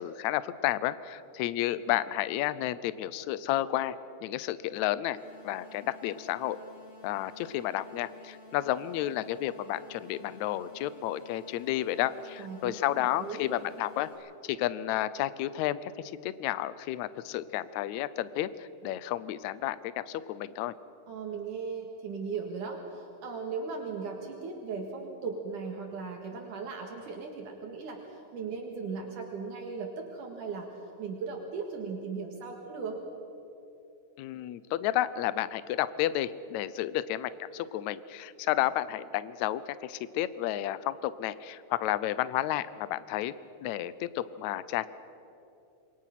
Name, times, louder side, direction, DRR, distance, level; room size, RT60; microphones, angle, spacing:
voice 1, 0.0-3.9 4.2-5.2 5.4-6.6 7.0-20.7 34.2-43.3 43.6-44.9, left 13 dB, 80° left, 16 dB, 1.7 m, -31 dB
sound 1, 5.1-14.1, left 2 dB, 25° left, 7.4 m, -52 dB
voice 2, 12.4-13.5 21.1-33.0, right 5 dB, 65° right, 1 dB, 3.1 m, -38 dB
27.5 x 23.0 x 5.9 m, 2.8 s
omnidirectional pair, 4.0 m